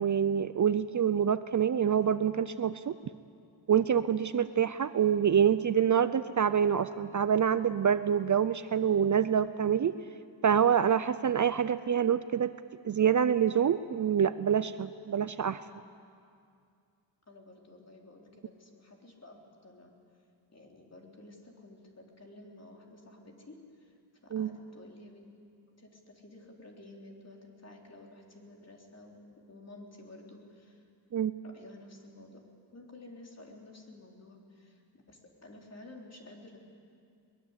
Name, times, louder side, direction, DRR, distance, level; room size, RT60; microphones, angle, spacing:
voice 1, 0.0-3.0 3.7-9.9 10.4-12.5 12.8-15.6 24.3-24.5 31.1-31.3, right 8 dB, 45° right, 13 dB, 0.5 m, -26 dB
voice 2, 17.3-19.4 19.6-19.9 20.5-23.9 24.2-25.2 25.8-30.8 31.4-32.4 32.7-34.8 35.1-36.6, left 2 dB, 35° left, 0 dB, 3.7 m, -52 dB
22.0 x 20.5 x 8.2 m, 2.3 s
wide cardioid pair, 115°, 44 cm